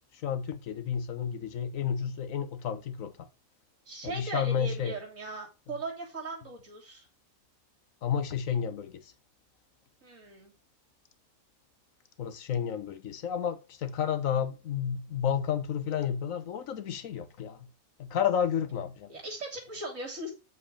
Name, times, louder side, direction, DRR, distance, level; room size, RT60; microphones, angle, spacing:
voice 1, 0.2-3.3 4.0-5.0 8.0-9.1 12.2-17.7 18.0-19.1, left 8 dB, 70° left, 1.3 m, -31 dB
voice 2, 3.9-7.1 10.0-10.5 19.1-20.3, right 2 dB, 65° right, 2.1 m, -39 dB
7.6 x 4.1 x 5.0 m
omnidirectional pair, 1.5 m